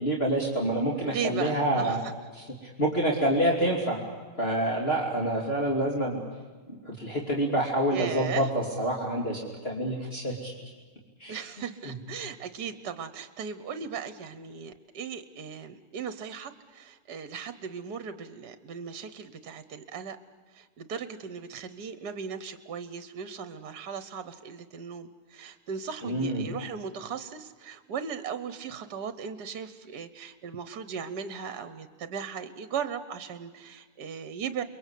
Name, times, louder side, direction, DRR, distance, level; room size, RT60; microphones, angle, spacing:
voice 1, 0.0-2.0 2.3-4.0 4.4-6.2 6.7-10.5 11.2-11.4 11.8-11.9 26.0-26.4, right 1 dB, 35° left, -2 dB, 3.2 m, -27 dB
voice 2, 1.0-2.1 7.9-8.5 9.9-10.1 11.3-20.2 20.5-34.6, right 6 dB, 70° right, 12 dB, 1.5 m, -37 dB
29.5 x 22.5 x 8.4 m, 1.5 s
omnidirectional pair, 1.9 m